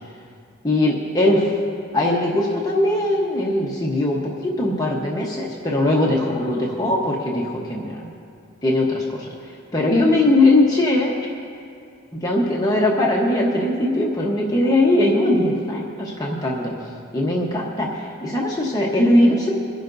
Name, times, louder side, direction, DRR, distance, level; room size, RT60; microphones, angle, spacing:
voice 1, 0.6-1.5 1.9-8.1 8.6-11.1 12.1-16.7 17.1-17.9 18.2-19.5, left 1 dB, 15° left, -3 dB, 1.0 m, -20 dB
26.5 x 10.5 x 2.6 m, 2.5 s
head